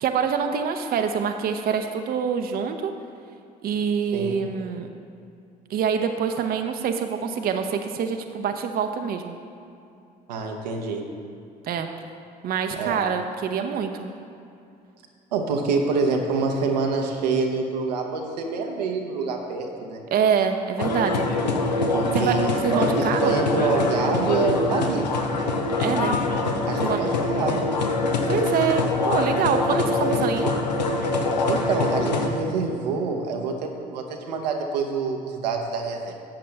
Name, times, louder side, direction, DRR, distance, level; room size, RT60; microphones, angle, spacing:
voice 1, 0.0-2.9 3.6-4.9 5.7-9.3 11.6-11.9 12.4-14.1 20.1-21.2 22.1-22.4 22.6-23.3 25.8-26.2 26.8-27.0 28.3-30.5, right 7 dB, 45° right, 6 dB, 0.6 m, -25 dB
voice 2, 10.3-11.0 12.8-13.0 15.3-20.0 21.9-25.0 26.7-27.7 31.5-36.1, right 4 dB, 80° right, 2 dB, 0.8 m, -26 dB
sound 1, 20.8-32.3, left 3 dB, 85° left, 0.6 m, -24 dB
11.5 x 7.7 x 3.3 m, 2.6 s
figure-of-eight pair, 50°, 21 cm